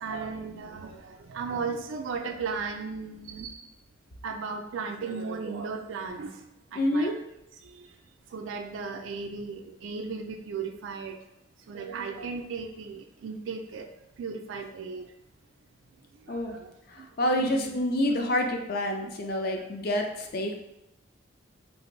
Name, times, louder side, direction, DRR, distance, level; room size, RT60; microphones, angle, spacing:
voice 1, 0.0-3.6 4.2-6.4 6.7-7.1 7.6-7.9 8.3-11.2 11.7-13.9 14.2-15.1 16.3-16.7 17.0-17.1 17.4-17.8 18.1-18.4 19.0-19.2 19.5-19.7, right 5 dB, 80° right, 4 dB, 0.3 m, -36 dB
voice 2, 6.8-7.2 16.3-16.6 16.9-20.6, left 1 dB, 50° left, 3 dB, 0.4 m, -28 dB
3.3 x 2.5 x 3.0 m, 0.85 s
head